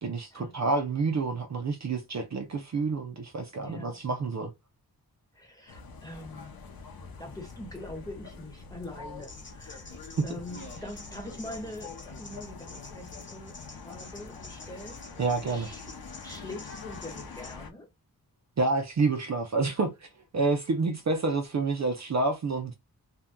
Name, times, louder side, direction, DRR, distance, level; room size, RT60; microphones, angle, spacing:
voice 1, 0.0-4.5 15.2-15.7 18.6-20.1 20.3-22.7, right 3 dB, 50° right, 0.5 m, -28 dB
voice 2, 3.6-4.0 5.3-6.6 7.2-9.9 10.2-15.0 15.5-15.8 16.2-17.9, left 1 dB, 10° left, 1.1 m, -43 dB
sound 1, 5.7-17.7, left 4 dB, 70° left, 0.7 m, -45 dB
sound 2, 9.2-17.5, left 3 dB, 30° left, 0.8 m, -49 dB
2.8 x 2.2 x 3.5 m
wide cardioid pair, 115°, 37 cm